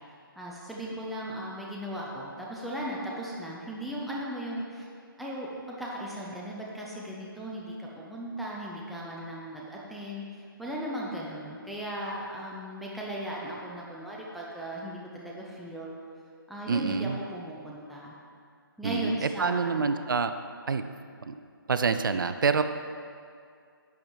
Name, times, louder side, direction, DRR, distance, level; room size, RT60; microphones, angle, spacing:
voice 1, 0.4-4.9 5.2-10.2 10.6-15.9 16.5-18.1 18.8-19.8, right 1 dB, ahead, -5 dB, 0.5 m, -37 dB
voice 2, 16.7-17.2 18.8-20.3 20.7-20.9 21.3-21.4 21.7-22.6, right 5 dB, 60° right, 10 dB, 0.6 m, -27 dB
10.5 x 7.3 x 4.7 m, 2.3 s
figure-of-eight pair, 160°, 12 cm